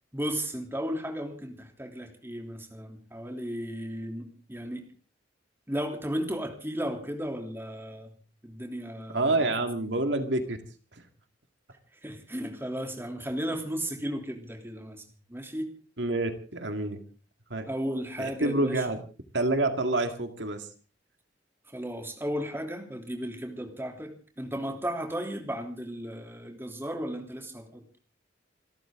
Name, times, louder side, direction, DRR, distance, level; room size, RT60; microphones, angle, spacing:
voice 1, 0.1-4.8 5.7-8.1 8.4-9.5 11.9-15.0 15.3-15.7 17.7-18.8 21.7-27.8, equal, 10° right, 3 dB, 3.1 m, -35 dB
voice 2, 9.1-10.6 16.0-17.0 17.5-17.7 18.2-19.0 19.3-20.7, right 2 dB, 65° right, 6 dB, 2.1 m, -27 dB
28.0 x 13.5 x 3.8 m, 0.38 s
head